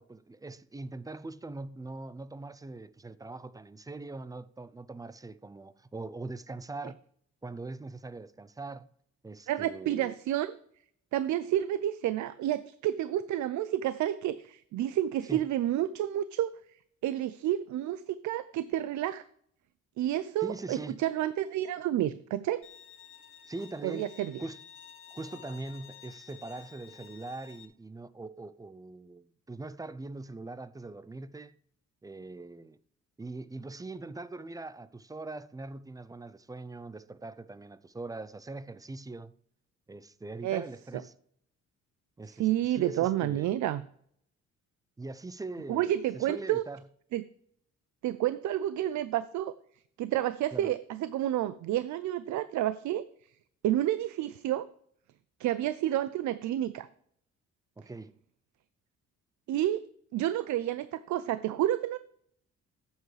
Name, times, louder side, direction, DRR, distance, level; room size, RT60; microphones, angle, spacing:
voice 1, 0.0-7.0 7.4-8.9 9.2-10.1 15.3-15.5 20.4-21.0 23.5-24.1 24.4-24.6 25.1-31.5 32.0-32.8 33.2-39.3 39.9-41.1 42.2-43.5 45.0-46.9 50.5-50.7 57.8-58.1, right 3 dB, 10° right, 0.4 m, -42 dB
voice 2, 9.5-10.5 11.1-16.5 17.0-19.2 20.0-22.6 23.8-24.4 40.4-40.6 42.4-43.8 45.7-46.6 47.1-47.2 48.0-49.5 50.0-53.0 53.6-54.7 55.4-56.9 59.5-59.8 60.1-62.0, right 12 dB, 70° right, 0.5 m, -30 dB
Bowed string instrument, 22.6-27.7, left 9 dB, 45° left, 1.2 m, -52 dB
12.0 x 8.2 x 3.3 m
cardioid pair, 90°, 30 cm